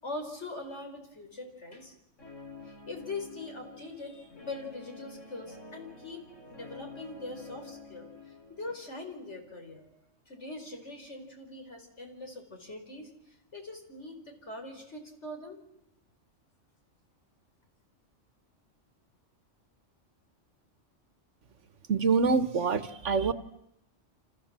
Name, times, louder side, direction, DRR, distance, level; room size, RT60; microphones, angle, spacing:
voice 1, 0.0-1.9 2.6-6.2 6.5-8.1 8.5-9.9 10.3-15.6, left 2 dB, 65° left, 4 dB, 5.3 m, -42 dB
Guitar, 2.2-8.7, left 3 dB, 85° left, 4.9 m, -48 dB
voice 2, 21.9-23.3, right 5 dB, 75° right, 12 dB, 1.6 m, -25 dB
29.5 x 27.0 x 7.5 m, 0.80 s
omnidirectional pair, 1.3 m